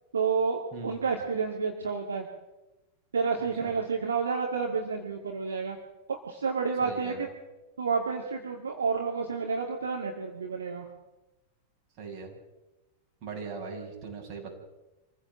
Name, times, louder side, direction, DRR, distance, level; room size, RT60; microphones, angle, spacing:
voice 1, 0.1-2.2 3.1-5.8 6.1-7.3 7.8-10.8, right 5 dB, 70° right, 2 dB, 2.5 m, -30 dB
voice 2, 3.4-3.7 6.8-7.3 12.0-12.3 13.2-14.5, right 5 dB, 40° right, 1 dB, 7.6 m, -40 dB
26.5 x 15.5 x 7.5 m, 1.0 s
figure-of-eight pair, 90°, 0 cm